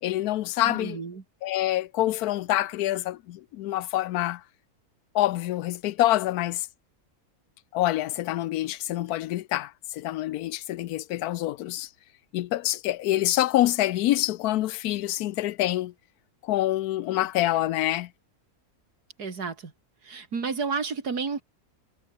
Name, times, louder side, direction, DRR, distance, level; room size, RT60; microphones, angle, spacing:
voice 1, 0.0-1.0 1.4-4.4 5.1-6.7 7.7-11.9 12.3-15.9 16.4-18.1, left 14 dB, 85° left, 1.1 m, -26 dB
voice 2, 0.7-1.2 19.2-19.7 20.0-21.4, right 5 dB, 85° right, 3.0 m, -31 dB
omnidirectional pair, 1.6 m